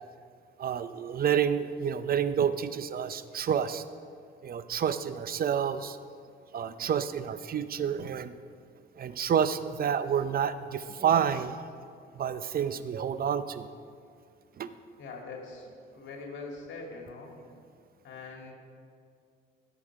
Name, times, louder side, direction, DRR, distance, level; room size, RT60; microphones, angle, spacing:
voice 1, 0.6-3.8 4.4-6.0 6.5-8.3 9.0-11.5 12.1-13.7 14.6-14.7, right 8 dB, 50° right, 12 dB, 0.6 m, -29 dB
voice 2, 15.0-17.3 18.0-18.5, left 3 dB, 70° left, 0 dB, 2.5 m, -43 dB
16.5 x 7.0 x 4.8 m, 2.3 s
cardioid pair, 90°, 20 cm